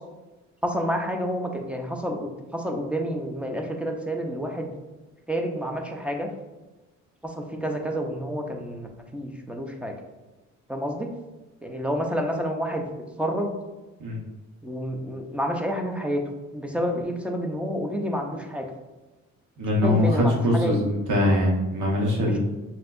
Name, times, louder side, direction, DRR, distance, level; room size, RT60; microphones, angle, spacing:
voice 1, 0.6-4.7 5.3-6.3 7.2-8.9 9.1-9.9 10.7-11.1 11.6-12.9 13.2-13.5 14.6-16.2 16.5-18.7 19.8-20.9 22.2-22.4, equal, 5° right, 2 dB, 0.7 m, -29 dB
voice 2, 19.6-22.4, left 1 dB, 80° right, -2 dB, 1.3 m, -22 dB
5.8 x 2.8 x 2.6 m, 1.1 s
cardioid pair, 90°, 30 cm